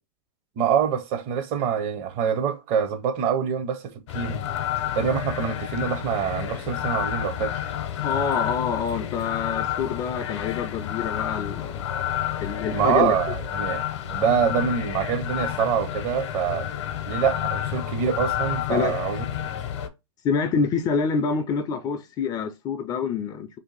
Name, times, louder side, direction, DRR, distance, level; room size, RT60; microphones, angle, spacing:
voice 1, 0.6-4.4 4.9-7.7 12.7-16.7 17.1-19.2, right 7 dB, 35° right, 0.6 m, -25 dB
sound 1, 4.1-19.9, left 11 dB, 65° left, 0.6 m, -30 dB
voice 2, 8.0-11.9 12.4-13.1 18.7-18.9 20.2-23.5, left 6 dB, 25° left, 0.3 m, -26 dB
2.6 x 2.5 x 3.8 m
hypercardioid pair, 130°, 16 cm